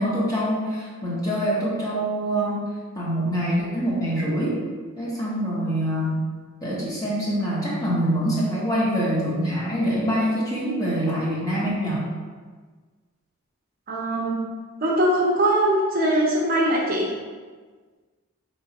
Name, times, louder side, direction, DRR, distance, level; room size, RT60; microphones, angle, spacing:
voice 1, 0.0-2.6 3.0-4.6 5.0-6.2 6.6-12.1, equal, 15° left, -7 dB, 0.9 m, -25 dB
voice 2, 13.9-14.4 14.8-17.1, right 1 dB, 45° right, -3 dB, 0.7 m, -21 dB
4.8 x 3.0 x 2.8 m, 1.5 s
head